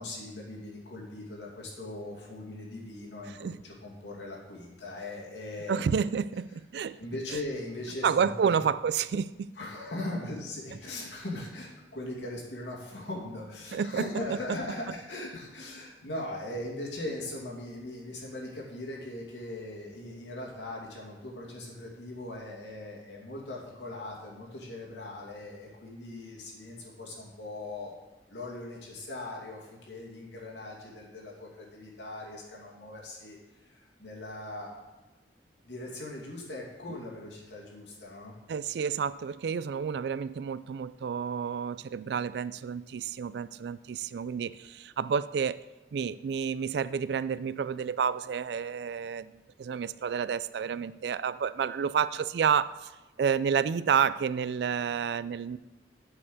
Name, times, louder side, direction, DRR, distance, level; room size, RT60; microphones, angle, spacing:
voice 1, 0.0-5.8 7.0-8.5 9.6-27.9 28.3-34.7 35.6-38.3, left 1 dB, 80° left, -2 dB, 2.5 m, -40 dB
voice 2, 5.7-7.0 8.0-9.5 13.7-14.4 38.5-45.6 45.9-49.3 49.6-52.9 53.2-55.6, right 7 dB, 65° right, 16 dB, 0.3 m, -30 dB
8.2 x 5.5 x 6.6 m, 1.1 s
head